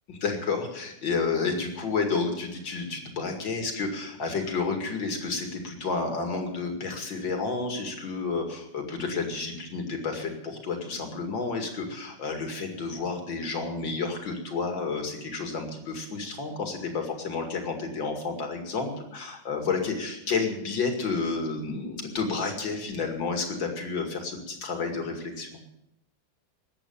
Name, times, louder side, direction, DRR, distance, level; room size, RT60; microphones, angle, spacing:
voice 1, 0.1-25.6, left 4 dB, 75° left, 3 dB, 3.0 m, -30 dB
19.5 x 8.3 x 7.1 m, 0.82 s
omnidirectional pair, 2.1 m